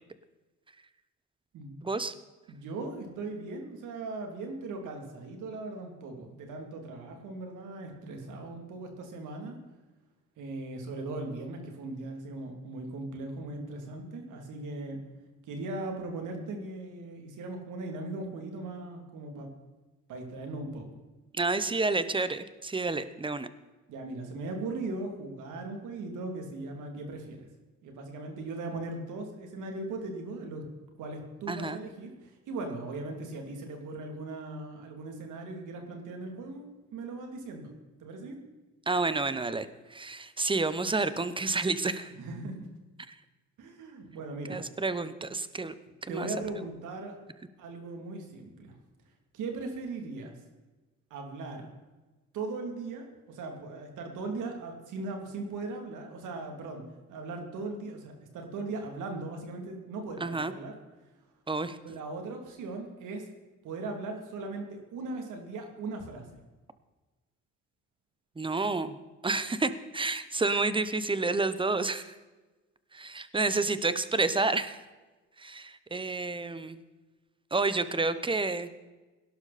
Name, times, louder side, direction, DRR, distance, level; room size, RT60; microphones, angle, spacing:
voice 1, 1.8-2.1 21.3-23.5 31.5-31.8 38.9-42.1 44.5-46.3 60.2-60.5 61.5-61.8 68.4-72.1 72.9-74.8 75.4-76.8 77.5-78.7, right 3 dB, 15° right, 13 dB, 1.0 m, -30 dB
voice 2, 2.5-9.6 10.4-15.0 15.4-19.5 20.1-20.9 23.9-27.5 27.8-30.6 31.0-37.7 38.0-38.4 42.2-42.7 43.6-44.6 46.1-47.1 47.6-48.8 49.3-50.4 51.1-51.7 52.3-56.8 57.1-60.7 61.8-63.3 63.6-66.4, right 3 dB, 85° right, 3 dB, 3.0 m, -39 dB
18.0 x 11.5 x 4.3 m, 1.2 s
cardioid pair, 90°, 30 cm